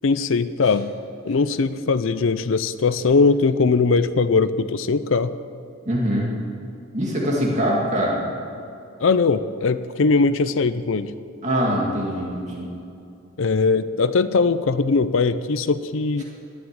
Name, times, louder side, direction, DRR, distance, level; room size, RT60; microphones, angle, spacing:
voice 1, 0.0-0.9 1.3-5.3 9.0-11.1 13.4-16.2, left 4 dB, 65° left, 13 dB, 0.5 m, -20 dB
voice 2, 5.9-6.3 6.9-8.2 11.4-12.7, equal, 35° right, -3 dB, 2.1 m, -23 dB
13.0 x 9.3 x 8.9 m, 2.6 s
head